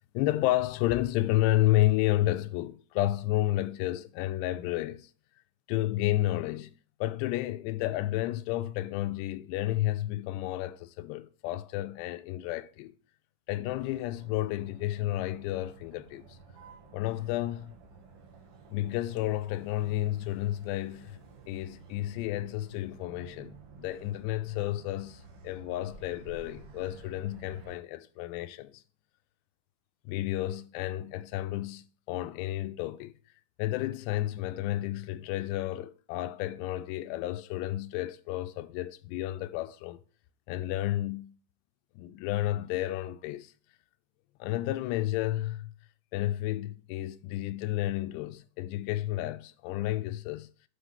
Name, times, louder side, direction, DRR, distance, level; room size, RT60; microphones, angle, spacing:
voice 1, 0.1-5.1 5.7-6.7 7.0-12.9 13.5-16.4 16.9-17.8 18.7-21.2 21.5-28.8 30.1-33.1 33.6-40.0 40.5-41.4 42.0-43.5 44.4-45.7 46.1-50.5, left 15 dB, 85° left, 2.7 m, -31 dB
Motor vehicle (road), 13.7-27.7, right 4 dB, 65° right, 3.6 m, -52 dB
9.5 x 3.5 x 5.3 m
omnidirectional pair, 4.8 m